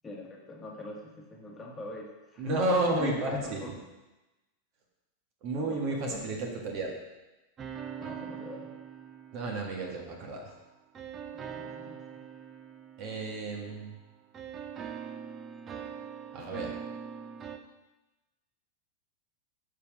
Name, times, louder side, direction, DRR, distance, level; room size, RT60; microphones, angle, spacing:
voice 1, 0.0-2.6 3.0-3.7 5.6-6.3 8.0-8.7 11.3-12.2, left 2 dB, 15° left, -2 dB, 1.6 m, -42 dB
voice 2, 2.4-3.6 5.4-6.9 9.3-10.5 13.0-14.0 16.3-16.7, right 2 dB, 40° right, 0 dB, 1.7 m, -31 dB
sound 1, 7.6-10.3 10.9-14.0 14.3-17.6, right 7 dB, 25° right, 0.7 m, -43 dB
6.8 x 5.3 x 6.1 m, 1.1 s
figure-of-eight pair, 90°, 0 cm